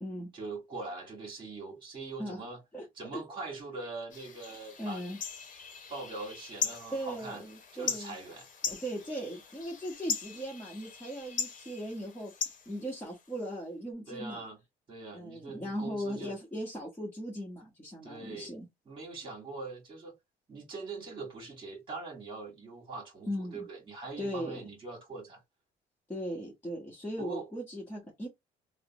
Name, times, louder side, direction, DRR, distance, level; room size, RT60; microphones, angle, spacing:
voice 1, 0.3-2.6 3.0-5.0 5.9-7.4 7.7-8.5 14.1-14.6 14.9-16.4 18.0-18.5 18.9-20.2 20.5-25.4 27.2-27.5, right 3 dB, 30° right, 1.9 m, -42 dB
sound 1, 4.1-13.5, left 6 dB, 50° left, 1.0 m, -39 dB
voice 2, 4.8-5.2 6.9-8.2 8.7-14.4 15.1-18.7 23.3-23.7 24.2-24.6 26.1-28.3, equal, 10° left, 1.1 m, -38 dB
3.3 x 2.1 x 3.0 m
cardioid pair, 110°, 17 cm